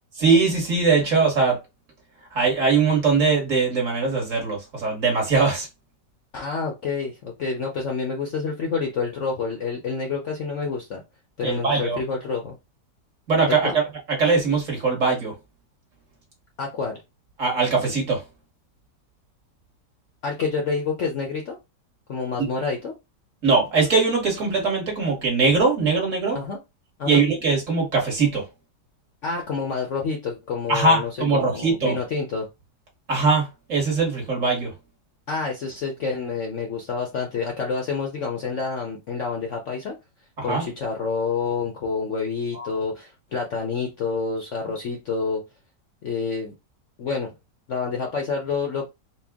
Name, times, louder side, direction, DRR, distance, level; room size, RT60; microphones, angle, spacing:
voice 1, 0.2-1.6 2.3-5.7 11.4-12.0 13.3-13.8 14.1-15.3 17.4-18.2 23.4-26.4 27.1-28.4 30.7-32.0 33.1-34.7 40.4-40.7 42.5-42.7, right 4 dB, 50° right, 1.7 m, -21 dB
voice 2, 6.3-11.0 11.4-12.6 13.5-13.8 16.6-17.0 20.2-21.6 22.1-22.9 26.3-26.6 27.0-27.2 29.2-32.5 35.3-39.9 40.4-45.4 46.0-46.5 47.0-47.3 47.7-48.9, left 5 dB, 60° left, 0.8 m, -28 dB
4.3 x 2.2 x 3.4 m
omnidirectional pair, 1.9 m